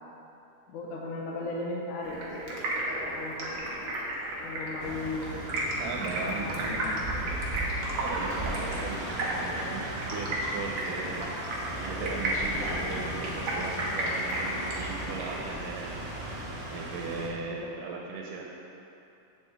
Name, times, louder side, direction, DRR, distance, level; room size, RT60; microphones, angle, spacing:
voice 1, 0.7-3.5 4.4-5.5 6.2-7.5 12.6-12.8 17.5-18.1, left 2 dB, 75° left, -2 dB, 2.2 m, -38 dB
Stream, 2.0-15.4, right 1 dB, 65° right, 1.2 m, -33 dB
sound 1, 4.8-17.3, right 1 dB, 40° right, 1.4 m, -37 dB
voice 2, 5.8-6.8 8.0-11.3 11.8-16.0 16.7-18.4, right 4 dB, 90° right, -1 dB, 2.3 m, -38 dB
8.6 x 7.2 x 3.5 m, 2.8 s
omnidirectional pair, 3.8 m